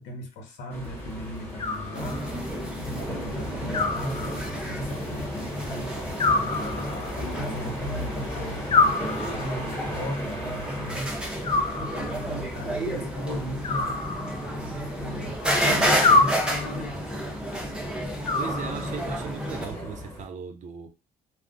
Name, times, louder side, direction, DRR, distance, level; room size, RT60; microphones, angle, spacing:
voice 1, 0.0-6.0 6.3-17.0, equal, 85° left, 0.8 m, -38 dB
sound 1, 0.7-20.2, left 1 dB, 10° left, 1.2 m, -38 dB
Animal, 1.6-2.5 3.7-4.7 6.2-7.3 8.7-9.7 11.4-12.3 13.6-14.7 16.0-16.9 18.2-19.2, left 3 dB, 30° left, 0.4 m, -26 dB
sound 2, 1.9-19.7, equal, 5° right, 0.7 m, -31 dB
voice 2, 18.4-20.9, right 6 dB, 45° right, 0.5 m, -37 dB
2.4 x 2.1 x 3.7 m
cardioid pair, 110°, 17 cm